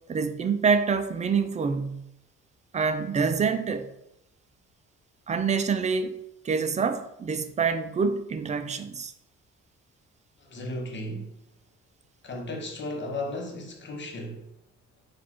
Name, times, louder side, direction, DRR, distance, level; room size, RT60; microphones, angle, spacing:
voice 1, 0.1-2.0 2.7-3.9 5.3-6.2 6.4-9.1, right 5 dB, 25° right, 0.4 m, -26 dB
voice 2, 10.4-11.4 12.2-14.5, left 1 dB, 40° left, 1.0 m, -35 dB
4.1 x 2.5 x 4.4 m
cardioid pair, 90°, 30 cm